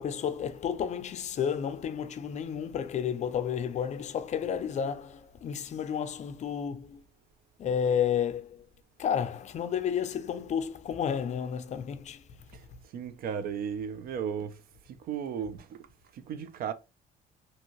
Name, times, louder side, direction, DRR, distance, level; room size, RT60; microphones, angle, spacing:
voice 1, 0.0-7.0 7.6-8.7 9.0-12.2, left 8 dB, 45° left, 0.4 m, -31 dB
voice 2, 12.9-15.8 16.1-16.7, right 7 dB, 60° right, 0.5 m, -35 dB
2.8 x 2.6 x 2.8 m
cardioid pair, 110°, 17 cm